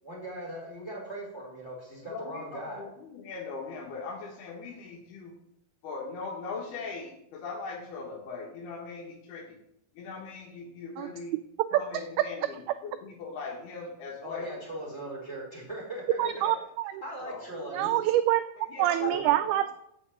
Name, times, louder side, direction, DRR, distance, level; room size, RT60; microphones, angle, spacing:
voice 1, 0.0-2.9 14.2-16.5 17.0-17.9 19.0-19.3, right 1 dB, 15° left, -3 dB, 4.7 m, -39 dB
voice 2, 2.1-5.3 5.8-9.6 10.0-11.3 11.7-14.6 16.2-16.6 17.2-17.4 18.6-19.2 19.5-19.7, left 4 dB, 70° left, 1 dB, 3.6 m, -40 dB
voice 3, 16.2-16.9 17.7-18.4 18.8-19.7, right 14 dB, 85° right, 11 dB, 2.2 m, -25 dB
8.3 x 7.0 x 8.4 m, 0.77 s
omnidirectional pair, 4.9 m